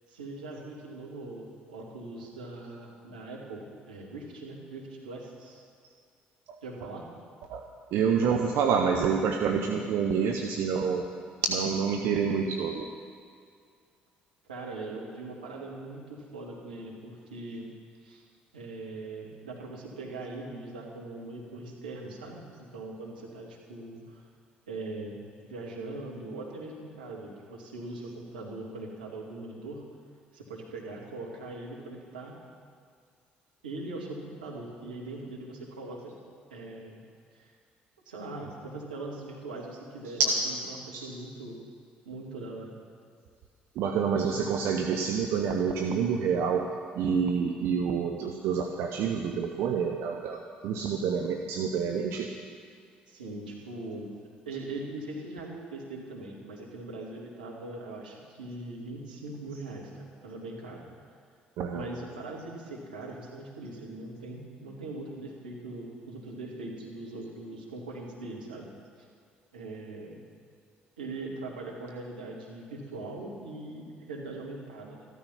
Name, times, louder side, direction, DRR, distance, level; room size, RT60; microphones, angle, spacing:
voice 1, 0.1-5.6 6.6-7.1 14.5-17.7 18.0-18.2 18.5-24.3 24.7-25.2 25.4-29.8 30.3-32.4 33.6-36.1 36.5-37.1 37.3-37.5 38.0-41.6 42.1-42.7 53.1-54.1 54.5-60.9 61.7-68.7 69.0-69.1 69.5-70.2 71.0-75.2, right 2 dB, 90° right, -3 dB, 2.4 m, -41 dB
voice 2, 7.5-11.0 11.4-12.9 40.9-41.1 43.7-46.7 46.9-50.4 50.6-52.3 61.6-61.9, right 6 dB, 65° right, 3 dB, 1.0 m, -28 dB
14.5 x 13.0 x 5.8 m, 2.2 s
hypercardioid pair, 50°, 5 cm